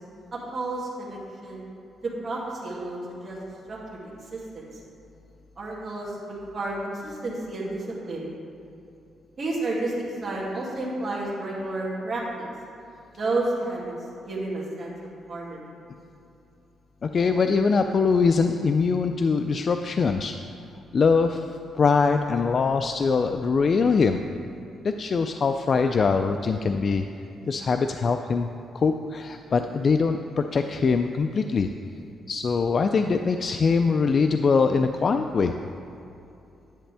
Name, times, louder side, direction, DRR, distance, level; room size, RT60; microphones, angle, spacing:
voice 1, 0.5-1.6 2.2-3.4 3.7-4.7 5.6-8.3 9.4-9.9 10.2-12.5 13.1-13.9 14.3-14.9 15.3-15.7, right 2 dB, 40° right, -5 dB, 2.5 m, -31 dB
voice 2, 17.0-20.3 20.9-21.5 21.7-24.2 24.8-27.0 27.4-28.5 28.7-31.7 32.3-35.5, left 5 dB, 40° left, 6 dB, 0.3 m, -22 dB
10.0 x 9.6 x 3.4 m, 2.7 s
cardioid pair, 130°, 0 cm